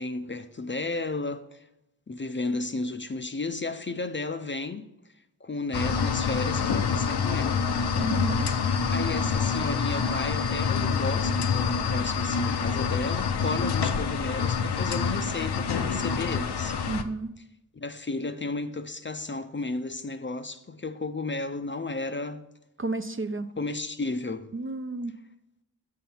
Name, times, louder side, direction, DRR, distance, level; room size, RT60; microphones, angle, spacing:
voice 1, 0.0-1.7 2.1-4.9 5.4-7.6 8.9-16.8 17.8-22.4 23.6-24.5, left 3 dB, 30° left, 0.5 m, -33 dB
sound 1, 5.7-17.0, left 6 dB, 70° left, 0.7 m, -27 dB
voice 2, 7.9-8.5 16.9-17.3 22.8-23.5 24.5-25.2, right 3 dB, 30° right, 0.4 m, -32 dB
6.4 x 5.6 x 4.3 m
cardioid pair, 50°, 41 cm